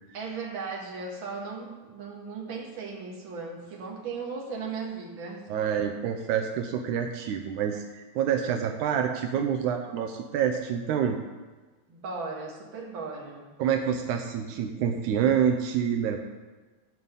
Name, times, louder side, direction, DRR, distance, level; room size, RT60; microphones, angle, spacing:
voice 1, 0.1-5.5 11.9-13.4, right 4 dB, 40° right, -1 dB, 2.1 m, -37 dB
voice 2, 5.5-11.2 13.6-16.2, right 8 dB, 85° right, 5 dB, 1.7 m, -27 dB
13.0 x 5.4 x 8.1 m, 1.3 s
omnidirectional pair, 4.3 m